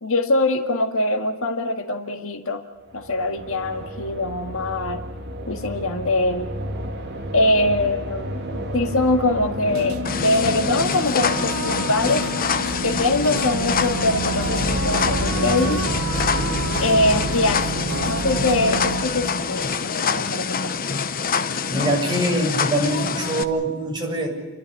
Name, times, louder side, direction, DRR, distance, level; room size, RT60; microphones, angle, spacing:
voice 1, 0.0-2.6 2.9-5.0 5.5-6.5 7.3-8.3 8.7-12.3 12.8-15.8 16.8-20.8, left 2 dB, 70° left, 6 dB, 1.9 m, -23 dB
sound 1, 2.8-19.8, right 1 dB, 50° right, 2.7 m, -32 dB
sound 2, 9.7-19.0, right 1 dB, 80° right, 1.5 m, -29 dB
sound 3, 10.0-23.4, left 5 dB, 40° left, 1.0 m, -26 dB
voice 2, 21.7-24.3, right 1 dB, 20° right, -1 dB, 7.3 m, -23 dB
29.5 x 12.5 x 9.7 m, 1.2 s
head